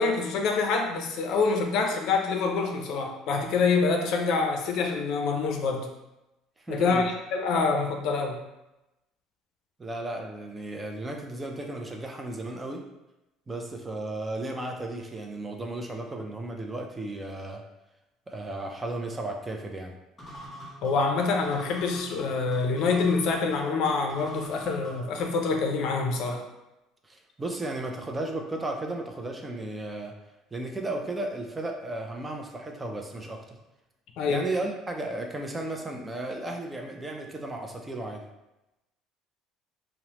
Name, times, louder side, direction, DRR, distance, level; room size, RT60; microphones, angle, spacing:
voice 1, 0.0-5.9 6.7-7.0 7.3-8.4 20.8-26.4 34.2-34.4, left 4 dB, 65° left, 3 dB, 0.4 m, -26 dB
voice 2, 6.6-7.1 9.8-12.8 13.5-17.6 18.3-19.9 27.0-30.1 30.5-33.6 34.3-38.2, right 2 dB, 15° right, 2 dB, 0.3 m, -34 dB
sound 1, 20.2-25.7, equal, 20° left, 0.7 m, -45 dB
2.9 x 2.0 x 2.8 m, 0.96 s
cardioid pair, 120°, 0 cm